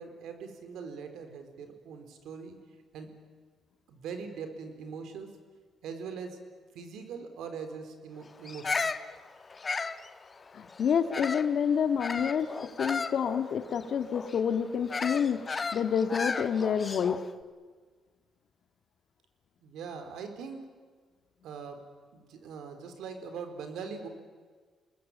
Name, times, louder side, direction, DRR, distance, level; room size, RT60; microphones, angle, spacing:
voice 1, 0.0-2.6 2.9-3.1 3.9-5.3 5.8-6.4 6.7-8.9 19.6-20.7 21.4-24.1, right 5 dB, 80° right, 7 dB, 4.0 m, -42 dB
Bird vocalization bird call bird song, 8.5-11.6 12.0-17.3, left 4 dB, 30° left, 1.2 m, -35 dB
voice 2, 10.5-15.4 15.7-17.2, left 7 dB, 60° left, 8 dB, 1.9 m, -28 dB
28.5 x 20.5 x 8.7 m, 1.5 s
cardioid pair, 90°, 0 cm